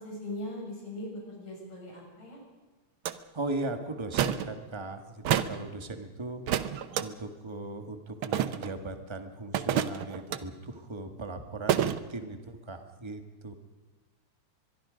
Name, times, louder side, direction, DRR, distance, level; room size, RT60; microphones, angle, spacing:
voice 1, 0.0-2.4 5.3-5.5, left 1 dB, 65° left, -2 dB, 8.2 m, -40 dB
sound 1, 3.1-3.2 4.1-4.5 5.2-5.6 6.5-7.0 8.2-8.7 9.5-10.4 11.7-12.0, right 10 dB, 70° right, 1.2 m, -28 dB
voice 2, 3.3-13.5, right 2 dB, 15° right, 6 dB, 1.0 m, -38 dB
24.5 x 22.5 x 5.2 m, 1.3 s
omnidirectional pair, 3.4 m